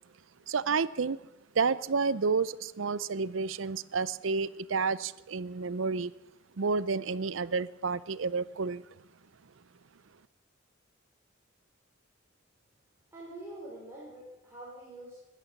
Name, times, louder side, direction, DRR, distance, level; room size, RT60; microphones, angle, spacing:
voice 1, 0.5-1.2 1.5-6.1 6.6-8.8, right 4 dB, 75° right, 18 dB, 0.6 m, -30 dB
voice 2, 13.1-15.2, right 1 dB, 10° right, -8 dB, 5.1 m, -45 dB
16.0 x 11.5 x 7.3 m, 0.93 s
head